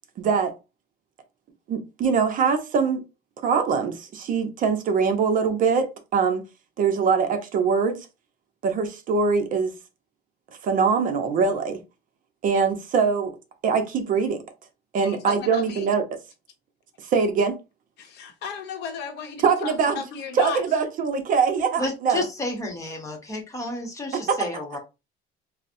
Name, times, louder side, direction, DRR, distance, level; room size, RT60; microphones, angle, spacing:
voice 1, 0.2-0.5 1.7-3.0 3.4-6.4 6.8-8.0 8.6-9.7 10.6-11.8 12.4-13.3 13.6-14.4 14.9-16.0 17.1-17.6 19.4-20.0 20.4-22.2, right 5 dB, 45° right, 0.6 m, -23 dB
voice 2, 15.0-15.9 18.0-20.6, left 6 dB, 60° left, 0.7 m, -34 dB
voice 3, 21.7-24.8, left 2 dB, 15° left, 0.9 m, -31 dB
3.9 x 2.0 x 2.6 m
cardioid pair, 145°, 19 cm